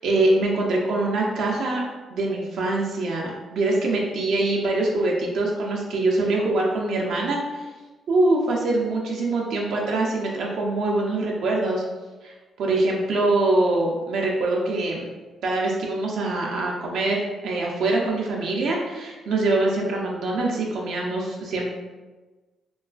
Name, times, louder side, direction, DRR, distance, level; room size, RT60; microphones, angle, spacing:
voice 1, 0.0-1.8 2.1-7.7 8.1-11.8 12.2-12.3 12.6-15.1 15.4-21.7, right 2 dB, 75° right, -2 dB, 0.4 m, -24 dB
2.4 x 2.2 x 2.3 m, 1.2 s
cardioid pair, 90°, 0 cm